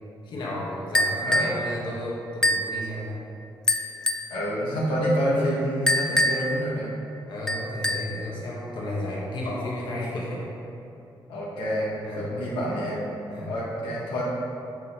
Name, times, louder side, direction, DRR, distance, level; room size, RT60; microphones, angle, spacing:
voice 1, 0.2-3.2 7.3-10.5 12.0-12.3 13.3-13.5, left 1 dB, 65° left, -5 dB, 1.5 m, -33 dB
sound 1, 0.9-1.6 2.4-2.7 3.7-4.3 5.9-6.6 7.5-8.2, left 1 dB, 10° left, 0.4 m, -24 dB
voice 2, 4.3-6.9 11.3-13.0 13.3-14.2, equal, 85° left, -7 dB, 1.4 m, -27 dB
7.6 x 4.6 x 4.4 m, 2.9 s
cardioid pair, 120°, 8 cm